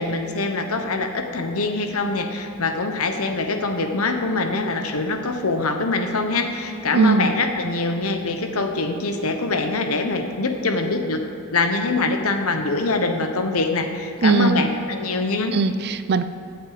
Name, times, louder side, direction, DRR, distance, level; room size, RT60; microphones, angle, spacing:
voice 1, 0.0-11.2 11.5-15.6, left 3 dB, 75° left, 5 dB, 1.1 m, -24 dB
voice 2, 6.9-7.3 14.2-14.6 15.5-16.2, right 4 dB, 50° right, 11 dB, 0.5 m, -19 dB
16.0 x 8.1 x 5.0 m, 2.8 s
head